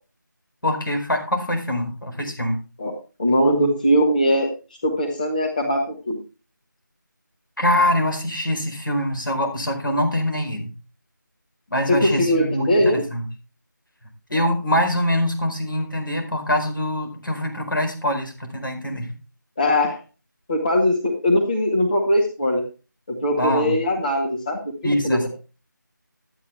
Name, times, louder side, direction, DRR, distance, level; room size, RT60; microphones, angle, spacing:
voice 1, 0.6-2.6 7.6-10.7 11.7-13.3 14.3-19.1 23.4-23.8 24.8-25.3, left 1 dB, 90° left, 4 dB, 4.6 m, -24 dB
voice 2, 3.2-4.5 4.8-6.2 11.9-13.0 19.6-20.0 20.5-22.6 23.1-25.3, equal, 25° left, 1 dB, 1.6 m, -20 dB
12.5 x 8.9 x 3.3 m, 0.33 s
figure-of-eight pair, 175°, 11 cm